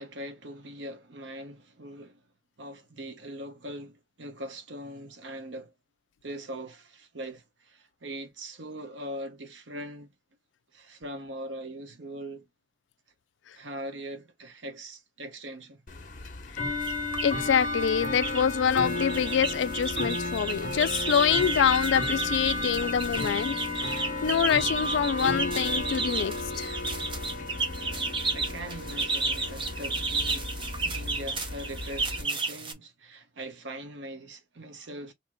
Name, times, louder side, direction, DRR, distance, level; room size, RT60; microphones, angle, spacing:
voice 1, 0.0-2.2 2.6-5.7 6.2-10.1 10.7-12.5 13.6-15.8 26.4-26.5 28.3-35.1, right 1 dB, 80° right, 0.9 m, -41 dB
Bell / Tick-tock, 15.9-32.2, left 2 dB, 45° left, 1.0 m, -33 dB
sound 1, 16.8-17.3 17.8-18.4 18.7-32.7, right 3 dB, 25° right, 0.7 m, -32 dB
voice 2, 17.2-24.0 24.2-26.8, left 7 dB, 80° left, 0.4 m, -26 dB
4.4 x 2.8 x 2.3 m
head